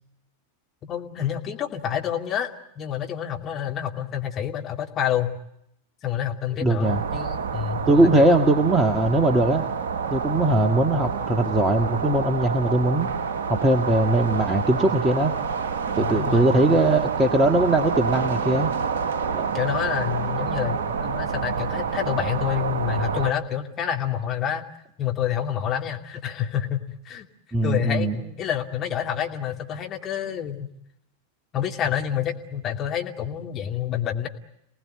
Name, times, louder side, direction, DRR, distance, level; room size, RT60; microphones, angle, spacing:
voice 1, 0.9-2.5 2.8-5.4 6.0-8.4 10.5-10.7 15.9-16.7 19.5-24.6 25.0-27.2 27.6-30.7 31.5-34.3, left 9 dB, 30° left, 2 dB, 2.7 m, -28 dB
voice 2, 6.6-7.0 7.9-9.6 10.1-13.1 13.5-15.3 15.9-18.7 19.3-19.5 27.5-28.1, right 2 dB, 15° right, 5 dB, 1.7 m, -20 dB
sound 1, 6.8-23.3, right 6 dB, 60° right, 1.2 m, -28 dB
28.5 x 19.0 x 9.2 m, 0.79 s
figure-of-eight pair, 90°, 0 cm